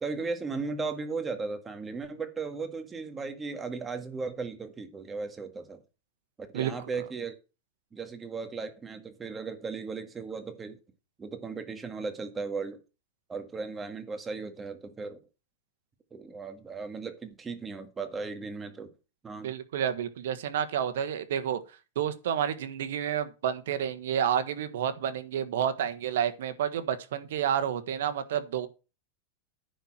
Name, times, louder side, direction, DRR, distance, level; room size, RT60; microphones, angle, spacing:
voice 1, 0.0-5.8 6.4-7.4 7.9-10.8 11.2-12.8 13.3-15.2 16.1-18.9 19.2-19.5, right 4 dB, 20° right, 1.8 m, -36 dB
voice 2, 19.4-21.6 21.9-28.7, right 9 dB, 80° right, 1.4 m, -30 dB
10.0 x 4.5 x 7.5 m
hypercardioid pair, 125°, 0 cm